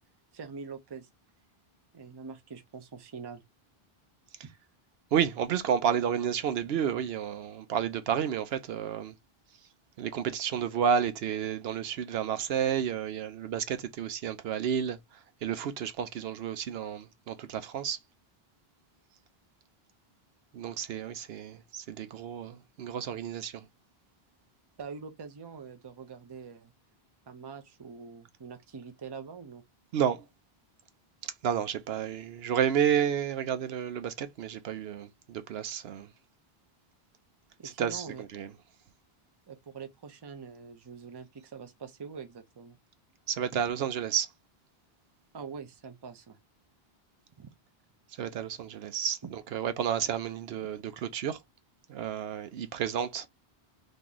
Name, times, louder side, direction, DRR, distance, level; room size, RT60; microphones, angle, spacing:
voice 1, 0.3-1.1 1.9-3.4 4.4-4.5 24.8-26.7 27.3-29.6 37.6-38.2 39.5-42.8 43.5-43.6 45.3-46.4 47.4-47.5 49.2-49.3, right 5 dB, 30° right, 0.5 m, -44 dB
voice 2, 5.1-9.1 10.0-15.0 15.4-18.0 20.5-23.6 29.9-30.2 31.4-36.1 37.8-38.5 43.3-44.3 48.2-51.4 51.9-53.3, right 8 dB, 75° right, 0.8 m, -31 dB
3.0 x 2.6 x 3.7 m
omnidirectional pair, 1.0 m